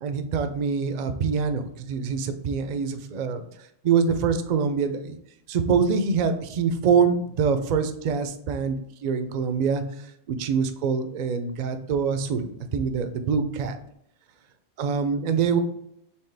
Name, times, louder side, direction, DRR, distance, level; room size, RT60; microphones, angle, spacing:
voice 1, 0.0-3.4 3.8-5.2 5.5-8.8 9.0-9.8 10.3-13.8 14.8-15.6, right 6 dB, 55° right, 8 dB, 0.5 m, -25 dB
4.4 x 3.5 x 3.3 m, 0.72 s
omnidirectional pair, 1.2 m